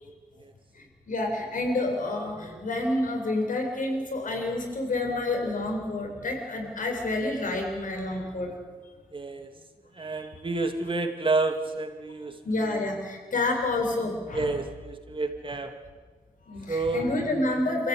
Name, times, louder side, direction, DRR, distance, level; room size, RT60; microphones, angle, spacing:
voice 1, 0.7-8.6 10.0-10.3 12.4-14.5 16.5-17.9, left 2 dB, 55° left, 2 dB, 7.8 m, -29 dB
voice 2, 9.1-9.5 9.9-12.9 14.3-15.7 16.7-17.1, right 3 dB, 35° right, 5 dB, 2.7 m, -30 dB
29.0 x 15.5 x 9.8 m, 1.4 s
cardioid pair, 75°, 16 cm